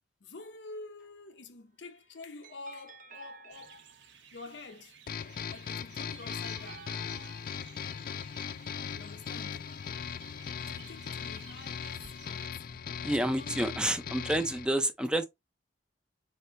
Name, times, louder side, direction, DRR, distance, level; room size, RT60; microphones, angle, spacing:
voice 1, 0.2-3.9 4.3-5.0 5.5-6.9 8.9-9.7 10.6-12.6 13.1-14.0, left 3 dB, 80° left, 0.9 m, -48 dB
sound 1, 1.7-4.4 5.3-7.8, right 6 dB, 50° right, 0.7 m, -54 dB
sound 2, 3.5-12.5, right 7 dB, 80° right, 0.9 m, -55 dB
sound 3, 5.1-14.7, left 7 dB, 50° left, 0.4 m, -39 dB
voice 2, 12.9-15.3, right 1 dB, 5° right, 0.5 m, -29 dB
4.3 x 3.8 x 3.2 m
head